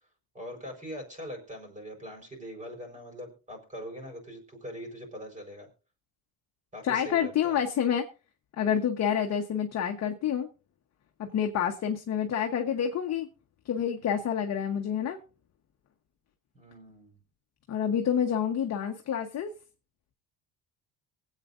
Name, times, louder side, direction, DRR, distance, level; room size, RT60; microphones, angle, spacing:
voice 1, 0.3-5.7 6.7-7.6 11.3-11.5 14.0-14.3 16.5-17.2, equal, 20° right, 4 dB, 4.6 m, -42 dB
voice 2, 6.8-8.0 8.6-10.5 11.2-13.3 13.6-15.2 17.7-19.5, left 8 dB, 40° left, 4 dB, 1.1 m, -28 dB
23.5 x 8.4 x 2.6 m, 0.33 s
cardioid pair, 150°, 39 cm